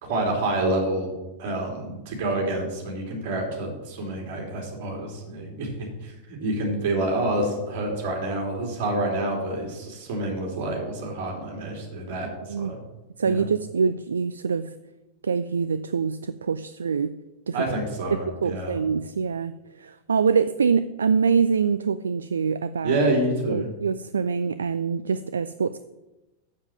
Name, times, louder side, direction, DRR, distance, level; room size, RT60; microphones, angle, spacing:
voice 1, 0.0-1.1 1.4-6.1 6.4-12.3 12.6-12.8 13.2-13.4 17.5-18.8 22.8-23.7, right 1 dB, 50° right, 0 dB, 3.3 m, -27 dB
voice 2, 13.2-14.8 15.2-17.2 17.5-17.6 18.1-23.0 23.5-25.8, right 6 dB, 70° right, 13 dB, 0.3 m, -25 dB
7.4 x 7.2 x 7.5 m, 1.0 s
figure-of-eight pair, 90°, 0 cm